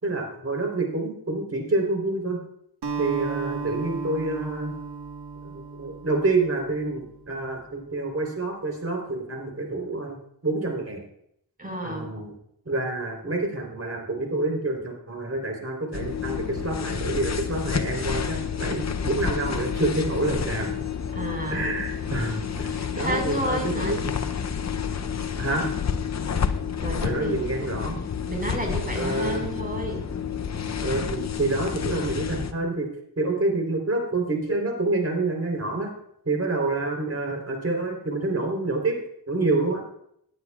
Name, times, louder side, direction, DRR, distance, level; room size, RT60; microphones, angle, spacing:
voice 1, 0.0-2.4 3.0-4.7 5.4-10.2 10.4-11.0 11.8-12.3 12.7-20.7 21.5-24.1 25.4-25.7 27.0-28.0 28.9-29.4 30.8-32.9 33.2-35.9 36.3-39.0 39.3-39.8, right 2 dB, 40° right, 2 dB, 3.7 m, -27 dB
Acoustic guitar, 2.8-7.3, right 5 dB, 80° right, 1.4 m, -34 dB
voice 2, 11.6-12.1 21.1-21.7 22.7-24.0 26.8-27.4 28.3-30.0, right 1 dB, 20° right, 0 dB, 5.0 m, -31 dB
sound 1, 15.9-32.5, left 7 dB, 45° left, 0.7 m, -29 dB
17.0 x 9.3 x 2.4 m, 0.71 s
cardioid pair, 60°, 40 cm